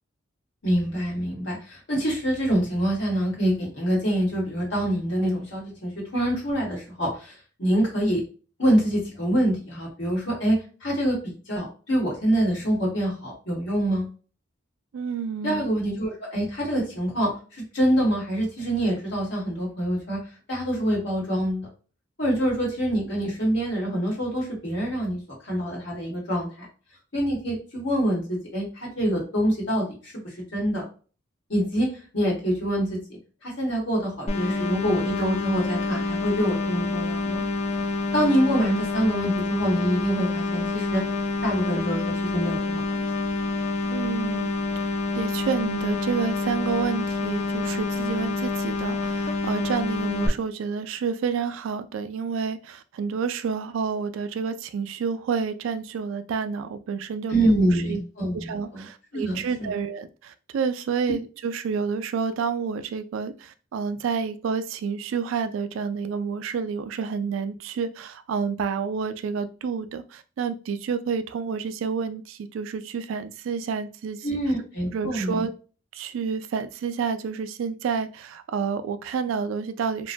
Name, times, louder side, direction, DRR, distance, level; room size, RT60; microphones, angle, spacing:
voice 1, 0.6-7.3 7.6-8.2 8.6-10.6 10.8-11.2 11.5-14.1 15.4-20.2 20.5-21.7 22.2-26.7 27.1-30.1 30.5-30.8 31.5-31.9 32.1-37.4 38.1-41.0 41.4-42.8 57.3-58.8 59.1-59.7 74.2-75.4, right 1 dB, 60° left, -3 dB, 1.3 m, -25 dB
voice 2, 14.9-15.7 43.9-58.0 58.3-74.3 74.9-75.5 75.9-80.1, right 6 dB, 80° right, 9 dB, 0.3 m, -29 dB
sound 1, 34.3-50.3, left 3 dB, 35° left, 0.3 m, -27 dB
2.9 x 2.1 x 2.6 m, 0.36 s
head